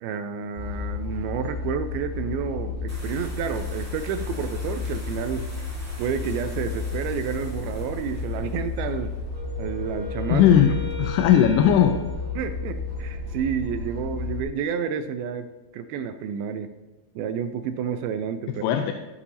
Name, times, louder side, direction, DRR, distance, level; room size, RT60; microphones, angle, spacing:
voice 1, 0.0-5.5 6.0-9.1 9.6-10.4 11.0-11.1 12.4-15.5 15.7-16.7 17.2-18.8, right 7 dB, 80° right, 9 dB, 2.2 m, -30 dB
sound 1, 0.5-14.4, left 4 dB, 20° left, 3.0 m, -32 dB
sound 2, 2.9-11.0, equal, 10° right, 1.0 m, -47 dB
Wind instrument woodwind instrument, 9.3-13.2, left 4 dB, 65° right, 2.2 m, -39 dB
voice 2, 10.3-11.9 18.6-18.9, left 9 dB, 90° left, 5 dB, 2.7 m, -18 dB
13.5 x 8.5 x 2.8 m, 1.2 s
omnidirectional pair, 4.6 m